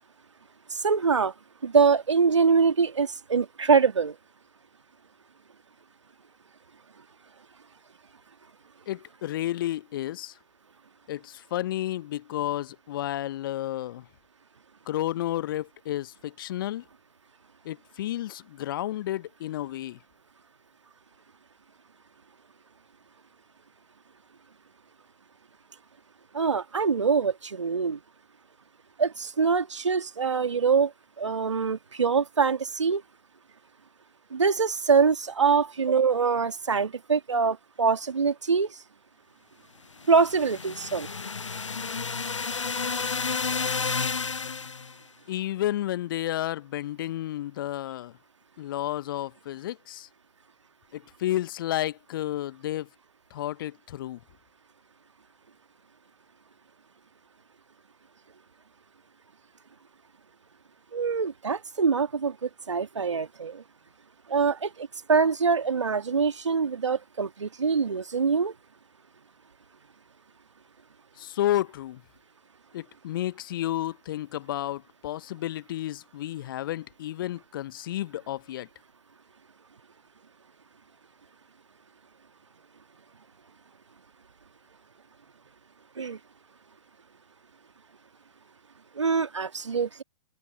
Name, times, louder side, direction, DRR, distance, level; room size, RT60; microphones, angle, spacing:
voice 1, 0.7-1.3 1.6-4.2 26.3-28.0 29.0-30.9 31.2-33.0 34.3-38.8 40.1-41.1 60.9-63.6 64.3-68.5 86.0-86.2 89.0-90.0, right 5 dB, 70° right, 2.0 m, -24 dB
voice 2, 8.9-10.3 11.1-14.1 14.9-16.8 17.6-20.0 45.3-48.1 48.6-50.1 50.9-52.9 53.3-54.2 71.2-72.0 72.7-78.7, left 13 dB, 45° left, 1.0 m, -31 dB
sound 1, 40.0-44.9, left 5 dB, 75° left, 0.9 m, -31 dB
figure-of-eight pair, 115°, 16 cm